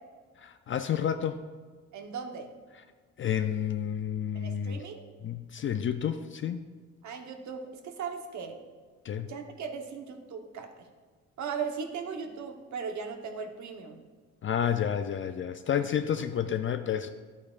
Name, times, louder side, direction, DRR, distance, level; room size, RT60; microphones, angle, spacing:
voice 1, 0.4-1.4 3.2-4.8 5.2-6.7 9.0-9.3 14.4-17.1, left 8 dB, 40° left, 9 dB, 0.4 m, -30 dB
voice 2, 1.9-2.5 4.3-5.0 7.0-8.6 9.3-10.9 11.4-14.0, right 6 dB, 70° right, 4 dB, 1.1 m, -38 dB
11.0 x 8.4 x 2.4 m, 1.5 s
cardioid pair, 90°, 30 cm